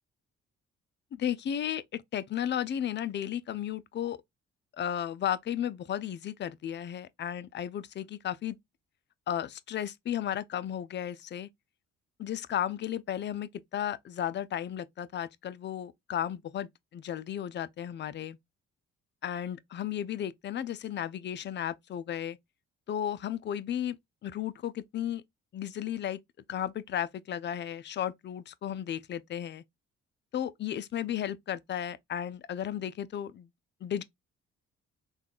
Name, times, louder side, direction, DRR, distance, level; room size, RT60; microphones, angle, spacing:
voice 1, 1.1-4.2 4.8-8.6 9.3-11.5 12.2-18.4 19.2-22.4 22.9-24.0 24.2-25.2 25.5-26.2 26.5-29.6 30.3-33.5 33.8-34.0, left 10 dB, 35° left, 0.4 m, -34 dB
3.5 x 2.3 x 2.3 m
hypercardioid pair, 55°, 31 cm